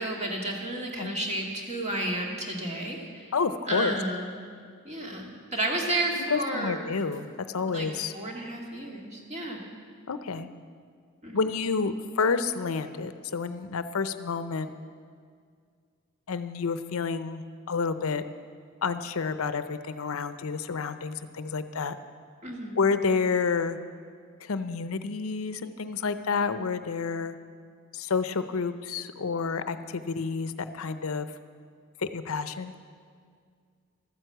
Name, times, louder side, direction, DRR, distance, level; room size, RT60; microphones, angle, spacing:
voice 1, 0.0-3.3 3.7-4.4 4.8-6.9 7.7-9.6 11.2-11.7 22.4-22.8, right 1 dB, 30° right, -1 dB, 2.0 m, -32 dB
voice 2, 3.3-4.0 6.1-8.1 10.1-10.5 11.3-14.7 16.3-18.2 18.8-21.9 22.8-23.8 24.4-27.4 27.9-31.3 32.0-32.7, left 5 dB, 80° left, 11 dB, 0.6 m, -29 dB
13.5 x 9.4 x 7.8 m, 2.1 s
head